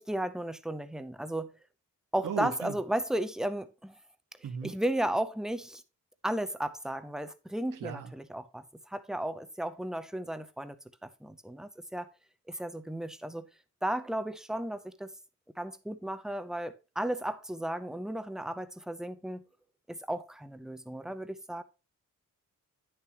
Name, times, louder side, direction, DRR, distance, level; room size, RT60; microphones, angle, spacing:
voice 1, 0.0-1.5 2.1-4.0 4.6-5.8 6.2-10.8 11.0-12.1 12.5-13.5 13.8-15.1 15.6-19.5 19.9-21.6, right 1 dB, ahead, 0.5 m, -34 dB
voice 2, 2.2-2.8 4.4-4.7 7.8-8.1, right 7 dB, 85° right, 1.4 m, -36 dB
10.0 x 6.9 x 2.9 m
wide cardioid pair, 145°, 31 cm